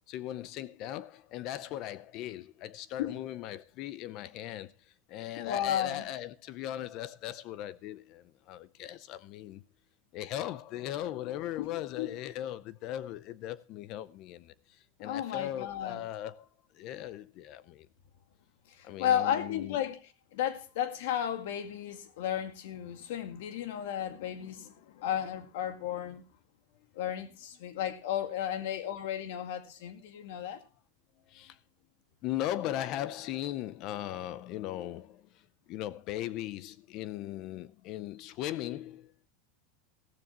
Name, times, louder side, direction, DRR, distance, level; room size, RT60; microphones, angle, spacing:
voice 1, 0.1-9.6 10.1-16.5 16.7-17.9 18.8-19.8 31.3-31.6 32.2-39.3, left 13 dB, 40° left, 0.5 m, -38 dB
voice 2, 5.4-6.0 11.6-11.7 12.0-12.1 15.0-16.0 18.7-26.2 26.9-30.6, left 10 dB, 65° left, 2.0 m, -34 dB
15.0 x 14.0 x 2.9 m
supercardioid pair, 170°, 0 cm